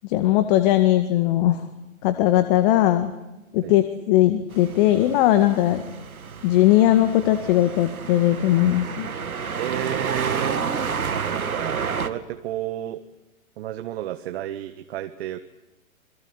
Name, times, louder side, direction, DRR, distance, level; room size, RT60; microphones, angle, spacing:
voice 1, 0.0-1.6 2.0-3.1 3.5-5.8 6.4-9.1, left 13 dB, 35° left, 9 dB, 1.9 m, -19 dB
sound 1, 4.5-12.1, right 6 dB, 85° right, 2.1 m, -30 dB
voice 2, 9.6-10.6 11.1-13.0 13.6-15.4, right 12 dB, 45° right, 7 dB, 1.7 m, -31 dB
28.5 x 21.5 x 8.1 m, 1.0 s
hypercardioid pair, 130°, 42 cm